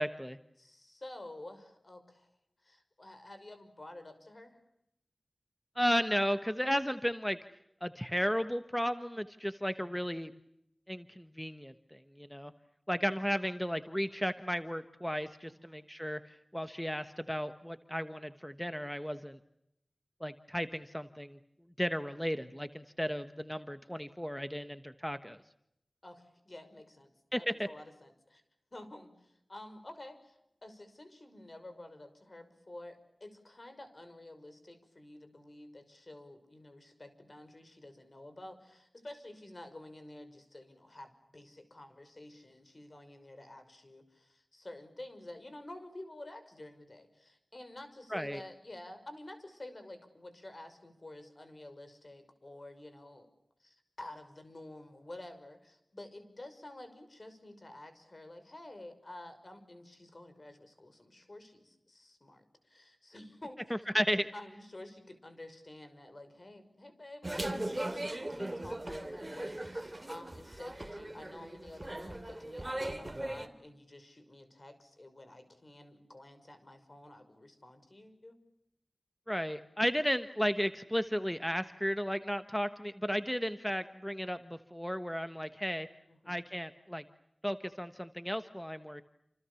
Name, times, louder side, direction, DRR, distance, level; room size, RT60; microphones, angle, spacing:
voice 1, 0.0-0.4 5.8-7.4 7.8-10.3 10.9-12.5 12.9-19.4 20.2-21.4 21.8-25.4 27.3-27.4 48.1-48.4 63.9-64.3 79.3-85.9 86.3-87.0 87.4-89.0, equal, 5° left, 10 dB, 1.1 m, -34 dB
voice 2, 0.6-2.3 2.6-4.6 15.5-15.9 26.0-27.1 27.4-28.4 28.7-53.3 53.6-63.9 64.3-78.4 86.1-86.5, left 1 dB, 45° left, 9 dB, 5.9 m, -50 dB
sound 1, 67.2-73.5, right 1 dB, 25° right, 3.0 m, -39 dB
28.5 x 28.0 x 7.0 m, 0.81 s
wide cardioid pair, 70°, 0 cm